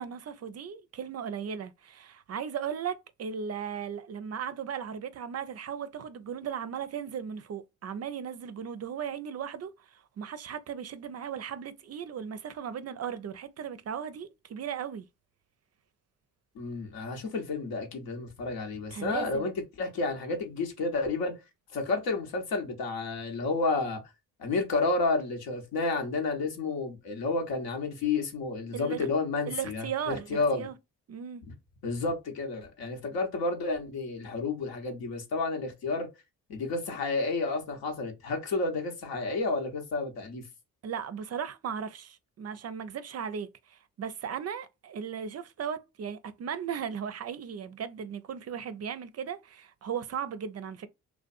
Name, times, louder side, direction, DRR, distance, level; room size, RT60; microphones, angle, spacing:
voice 1, 0.0-15.1 18.9-19.5 28.7-29.1 29.5-30.7 31.1-31.4 40.8-50.9, right 8 dB, 45° right, 0.4 m, -37 dB
voice 2, 16.5-19.5 19.8-21.3 21.7-24.0 24.4-30.6 31.5-31.6 31.8-36.1 36.5-40.4, left 3 dB, 75° left, 1.0 m, -31 dB
2.5 x 2.2 x 2.4 m
supercardioid pair, 50°, 37 cm